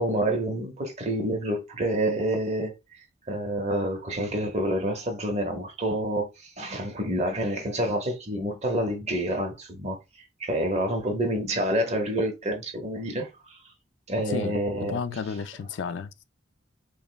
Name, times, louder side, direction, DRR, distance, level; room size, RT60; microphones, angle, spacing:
voice 1, 0.0-10.0 10.4-13.6 14.1-15.0, right 1 dB, 35° right, 0.8 m, -28 dB
voice 2, 14.3-16.2, left 6 dB, 70° left, 0.3 m, -33 dB
5.0 x 2.1 x 2.2 m
head